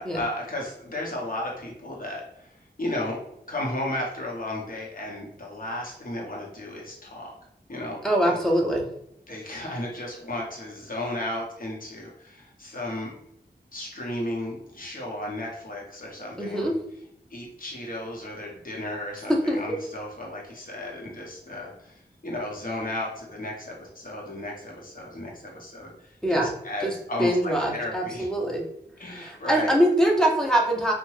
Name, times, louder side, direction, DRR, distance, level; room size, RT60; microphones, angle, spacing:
voice 1, 0.0-3.2 3.5-7.3 7.7-8.3 9.3-13.1 13.7-16.7 17.3-28.3 29.0-29.7, left 1 dB, 50° left, -2 dB, 0.9 m, -34 dB
voice 2, 8.0-8.9 16.4-16.7 19.3-19.6 26.2-26.5 26.8-26.9 27.2-28.6 29.1-30.9, equal, 5° left, 0 dB, 0.6 m, -23 dB
2.8 x 2.2 x 3.1 m, 0.75 s
wide cardioid pair, 70°, 18 cm